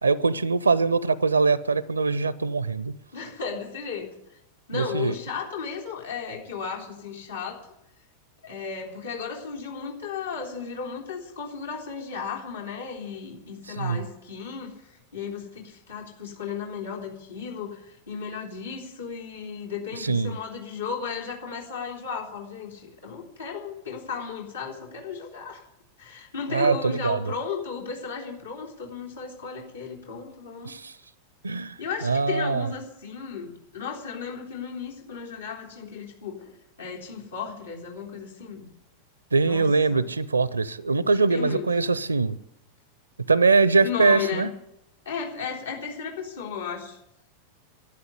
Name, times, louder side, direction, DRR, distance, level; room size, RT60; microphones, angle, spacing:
voice 1, 0.0-2.9 4.7-5.1 13.7-14.0 19.9-20.4 26.5-27.3 30.6-30.9 31.4-32.7 39.3-42.4 43.3-44.5, right 4 dB, 80° right, 20 dB, 0.5 m, -23 dB
voice 2, 3.1-4.1 4.7-7.6 8.4-14.7 15.1-25.6 26.0-30.7 31.8-36.4 36.8-38.7 39.4-40.1 41.0-41.7 43.8-44.5 45.1-47.0, left 6 dB, 70° left, -2 dB, 3.6 m, -35 dB
12.0 x 9.8 x 9.8 m, 0.83 s
figure-of-eight pair, 90°, 0 cm